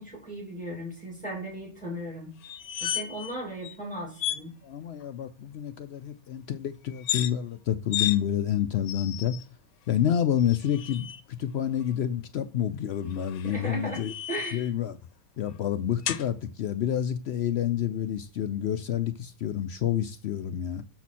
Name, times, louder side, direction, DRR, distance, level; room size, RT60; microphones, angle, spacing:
voice 1, 0.0-2.3 2.8-4.5 13.4-14.0 14.3-14.6, right 1 dB, 5° left, 3.0 m, -36 dB
sound 1, 2.4-3.3 3.6-3.8 4.2-4.4 6.9-7.3 7.9-8.2 8.9-9.4 10.4-11.2 13.1-14.7 16.1-16.3, left 11 dB, 80° left, 1.1 m, -33 dB
voice 2, 4.6-9.4 9.9-14.1 14.5-15.0 15.4-20.8, left 10 dB, 65° left, 0.7 m, -28 dB
6.8 x 5.9 x 4.2 m
omnidirectional pair, 1.5 m